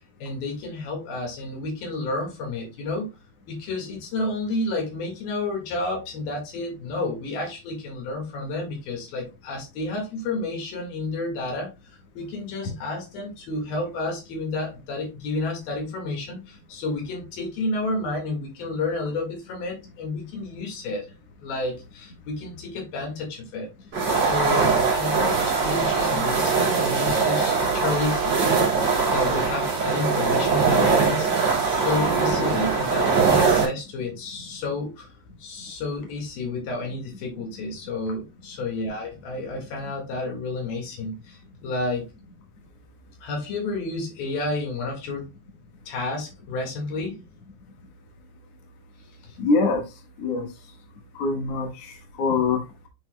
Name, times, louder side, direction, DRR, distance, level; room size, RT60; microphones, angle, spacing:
voice 1, 0.2-3.1 3.5-11.7 12.1-21.1 21.4-23.7 24.1-28.5 28.8-35.1 35.4-42.1 43.2-45.3 45.9-47.2 49.2-49.4, left 2 dB, 85° left, 3.8 m, -31 dB
sound 1, 23.9-33.7, right 4 dB, 40° right, 3.2 m, -22 dB
voice 2, 49.4-50.7 51.1-52.9, left 3 dB, 55° left, 2.4 m, -25 dB
9.4 x 4.5 x 2.2 m
omnidirectional pair, 4.0 m